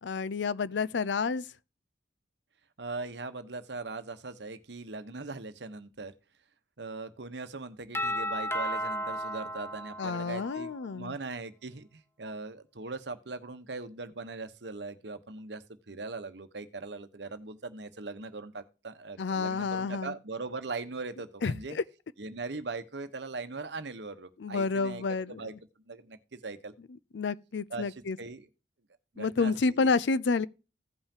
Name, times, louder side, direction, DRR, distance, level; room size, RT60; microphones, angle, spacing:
voice 1, 0.0-1.5 10.0-11.2 19.2-20.1 21.4-21.8 24.4-25.6 27.1-28.2 29.2-30.5, left 4 dB, 75° left, 0.5 m, -29 dB
voice 2, 2.8-6.1 6.8-21.8 22.2-25.0 25.3-25.5 25.9-26.7 27.7-28.5 29.1-29.9, right 3 dB, 65° right, 1.0 m, -40 dB
Doorbell, 7.9-10.8, equal, 15° left, 0.7 m, -34 dB
16.0 x 5.6 x 2.8 m
head